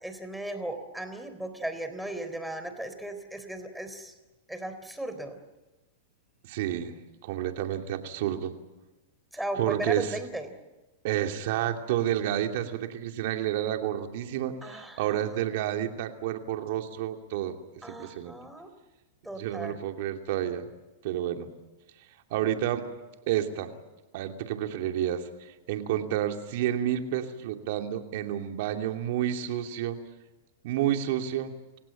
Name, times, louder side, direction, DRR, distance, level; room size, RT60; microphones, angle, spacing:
voice 1, 0.0-4.1 4.5-5.4 9.3-10.6 14.6-15.3 17.8-18.7 19.2-19.8, right 1 dB, ahead, 8 dB, 3.7 m, -36 dB
voice 2, 6.4-6.9 7.2-8.5 9.6-10.2 11.0-17.6 17.9-18.3 19.3-20.6 21.0-21.5 22.3-22.8 23.3-23.7 24.1-25.2 25.7-30.0 30.6-31.5, right 11 dB, 60° right, 5 dB, 2.7 m, -30 dB
29.0 x 16.5 x 9.0 m, 1.1 s
hypercardioid pair, 120°, 0 cm